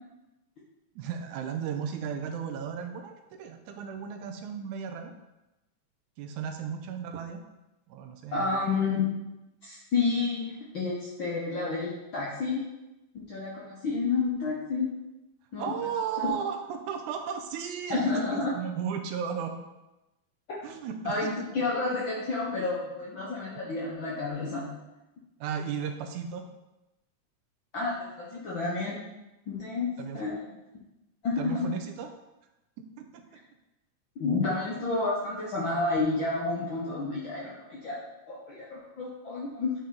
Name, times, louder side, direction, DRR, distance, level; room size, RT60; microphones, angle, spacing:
voice 1, 1.0-5.1 6.2-7.4 7.9-8.6 15.6-19.6 20.6-21.5 25.4-26.4 30.0-30.3 31.4-32.1 32.8-33.2, right 7 dB, 85° right, 6 dB, 2.0 m, -35 dB
voice 2, 8.3-9.2 9.6-12.6 13.3-14.9 15.5-15.8 16.2-16.3 17.9-18.5 21.0-24.7 27.7-29.0 29.5-29.9 30.1-30.4 31.2-31.7 34.2-38.0 38.3-39.7, left 3 dB, 65° left, -5 dB, 1.2 m, -30 dB
9.0 x 4.3 x 3.9 m, 0.98 s
omnidirectional pair, 3.6 m